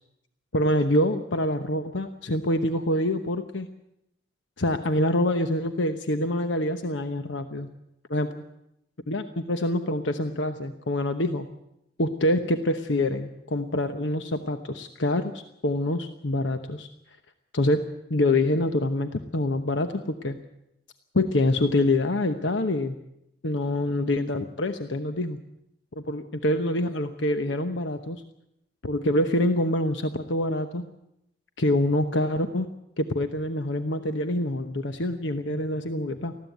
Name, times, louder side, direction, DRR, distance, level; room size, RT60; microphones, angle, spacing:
voice 1, 0.5-3.7 4.6-7.7 8.1-8.3 9.1-11.5 12.0-16.9 17.5-17.8 18.1-20.4 21.1-23.0 23.4-25.4 26.0-28.2 28.8-30.8 31.6-32.7 33.0-36.3, left 1 dB, 80° left, 8 dB, 1.0 m, -26 dB
19.5 x 15.0 x 9.2 m, 0.83 s
head